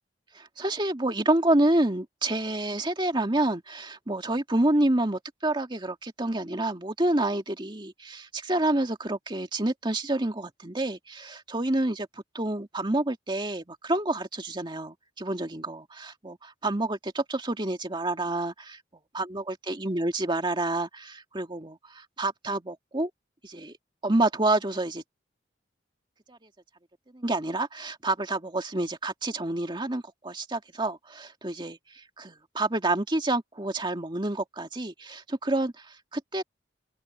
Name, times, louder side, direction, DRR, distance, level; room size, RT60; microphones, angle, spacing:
voice 1, 0.3-18.8 19.1-23.1 23.4-23.7 24.0-25.0 26.3-26.4 27.1-36.4, right 2 dB, 25° right, 2.3 m, -28 dB
open air
head